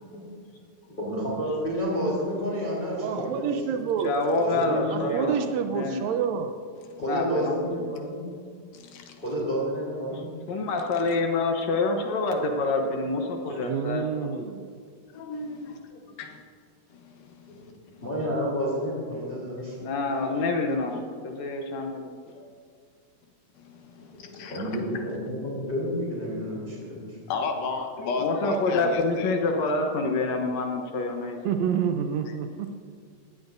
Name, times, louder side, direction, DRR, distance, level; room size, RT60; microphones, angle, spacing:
voice 1, 1.0-3.5 4.4-5.2 7.0-8.3 9.2-10.3 17.5-17.7 18.0-19.7 24.1-27.2, equal, 15° left, -5 dB, 3.4 m, -30 dB
voice 2, 3.0-4.2 4.9-6.5 13.5-14.7 31.4-32.8, right 7 dB, 90° right, 6 dB, 1.5 m, -28 dB
voice 3, 4.0-6.2 7.0-7.8 10.5-14.5 15.1-16.0 19.3-19.4 19.8-22.5 28.0-31.5, left 3 dB, 65° left, 3 dB, 1.9 m, -27 dB
voice 4, 8.7-9.2 15.4-15.8 16.2-16.4 16.9-17.7 23.6-24.6 27.3-29.3, left 4 dB, 85° left, 3 dB, 3.1 m, -34 dB
20.0 x 15.5 x 2.7 m, 2.1 s
omnidirectional pair, 4.0 m